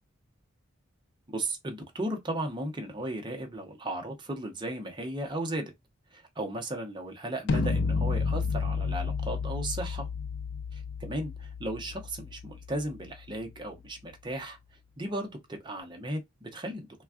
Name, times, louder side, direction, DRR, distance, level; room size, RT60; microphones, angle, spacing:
voice 1, 1.3-5.7 6.1-10.1 11.0-14.6 15.0-17.0, right 1 dB, 20° right, 0.7 m, -35 dB
sound 1, 7.5-13.5, left 4 dB, 60° left, 0.4 m, -31 dB
3.4 x 2.2 x 2.3 m
head